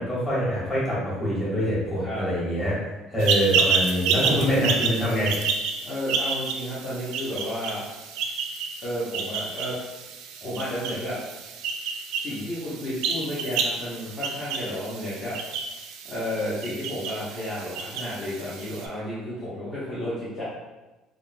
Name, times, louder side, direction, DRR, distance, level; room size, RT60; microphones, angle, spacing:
voice 1, 0.0-2.8 3.1-5.4, equal, 20° left, -8 dB, 1.4 m, -25 dB
sound 1, 3.2-18.9, right 5 dB, 80° right, 0.3 m, -30 dB
voice 2, 4.2-4.6 5.8-7.8 8.8-9.8 10.4-11.2 12.2-15.4 16.1-20.4, equal, 35° left, -11 dB, 0.9 m, -32 dB
3.6 x 2.5 x 2.2 m, 1.1 s
cardioid pair, 150°, 0 cm